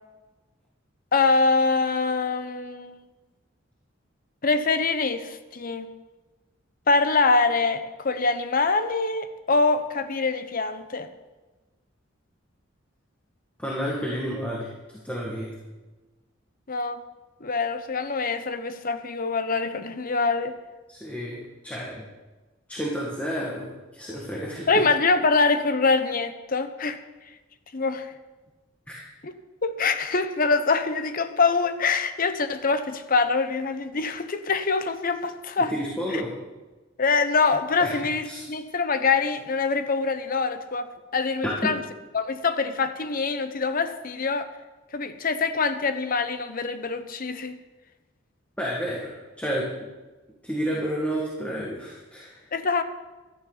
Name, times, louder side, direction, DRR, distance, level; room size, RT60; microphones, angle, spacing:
voice 1, 1.1-3.0 4.4-5.9 6.9-11.1 16.7-17.0 17.4-20.6 24.7-27.0 27.7-28.1 29.2-29.3 29.6-35.7 36.1-36.2 37.0-41.8 42.1-44.5 44.9-47.6 52.5-52.8, left 4 dB, 45° left, 10 dB, 0.9 m, -24 dB
voice 2, 13.6-14.7 15.0-15.5 20.9-22.0 22.7-24.8 28.9-29.0 35.7-36.3 37.8-37.9 38.2-38.4 41.4-41.7 48.6-49.1 49.4-49.7 50.4-52.4, equal, 5° left, -4 dB, 1.9 m, -30 dB
15.5 x 12.5 x 4.0 m, 1.2 s
head